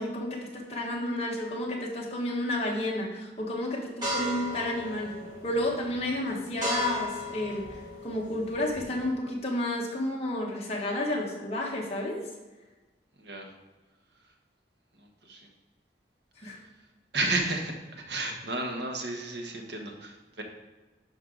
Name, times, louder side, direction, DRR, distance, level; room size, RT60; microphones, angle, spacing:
voice 1, 0.0-5.1 5.4-7.6 8.0-12.2 16.4-16.6, left 1 dB, 35° left, -2 dB, 1.6 m, -31 dB
sound 1, 4.0-9.1, left 1 dB, 25° right, 2.8 m, -36 dB
voice 2, 13.2-13.5 15.0-15.5 16.4-16.5 17.1-20.4, right 2 dB, 75° right, 2 dB, 1.3 m, -33 dB
11.0 x 4.7 x 3.9 m, 1.2 s
head